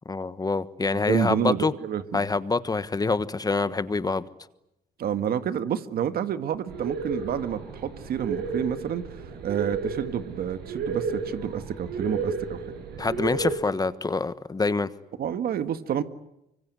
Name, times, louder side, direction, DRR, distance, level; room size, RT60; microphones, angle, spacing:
voice 1, 0.0-1.7 2.1-4.3 13.0-14.9, left 3 dB, 25° left, 1.3 m, -26 dB
voice 2, 1.1-2.2 5.0-12.6 15.2-16.0, right 9 dB, 70° right, 1.8 m, -29 dB
sound 1, 6.7-13.6, right 5 dB, 90° right, 6.7 m, -32 dB
25.0 x 25.0 x 9.5 m
cardioid pair, 100°, 16 cm